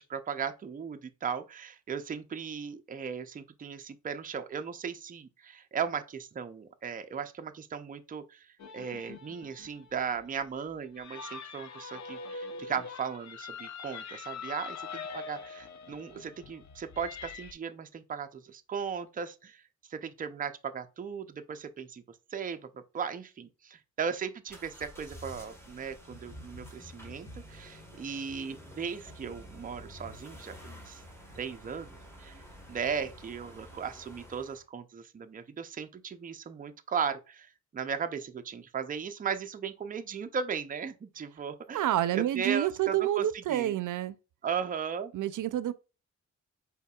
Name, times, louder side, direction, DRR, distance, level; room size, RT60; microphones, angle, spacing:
voice 1, 0.0-8.5 8.7-19.6 19.9-22.0 22.3-31.0 31.4-31.9 32.2-32.4 32.7-41.9 42.1-43.7 44.4-45.1, right 6 dB, 30° right, 0.5 m, -37 dB
sound 1, 8.6-17.5, left 5 dB, 65° left, 0.7 m, -43 dB
sound 2, 24.5-34.6, equal, 10° left, 1.3 m, -49 dB
voice 2, 41.7-44.2 45.1-45.7, right 12 dB, 80° right, 0.5 m, -28 dB
5.6 x 4.1 x 2.3 m
wide cardioid pair, 145°, 31 cm